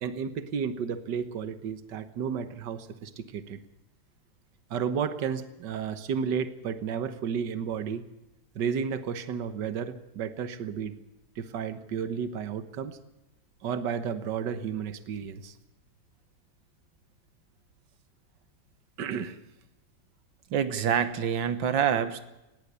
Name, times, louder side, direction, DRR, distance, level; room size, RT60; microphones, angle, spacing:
voice 1, 0.0-3.6 4.7-8.0 8.6-10.9 11.4-13.0 13.6-15.5 19.0-19.4, right 7 dB, 70° right, 11 dB, 1.8 m, -32 dB
voice 2, 20.5-22.2, right 8 dB, 90° right, 11 dB, 1.9 m, -26 dB
19.5 x 17.5 x 8.2 m, 0.96 s
omnidirectional pair, 2.0 m